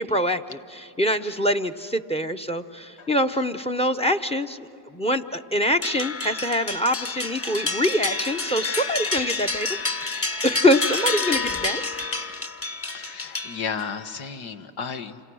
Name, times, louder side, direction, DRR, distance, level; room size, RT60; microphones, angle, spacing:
voice 1, 0.0-4.6 4.9-11.8, equal, 10° left, 11 dB, 0.8 m, -25 dB
sound 1, 5.8-14.0, left 3 dB, 30° left, 1.4 m, -29 dB
voice 2, 12.9-15.1, left 6 dB, 75° left, 7 dB, 1.4 m, -33 dB
28.0 x 27.0 x 6.3 m, 2.6 s
supercardioid pair, 70°, 48 cm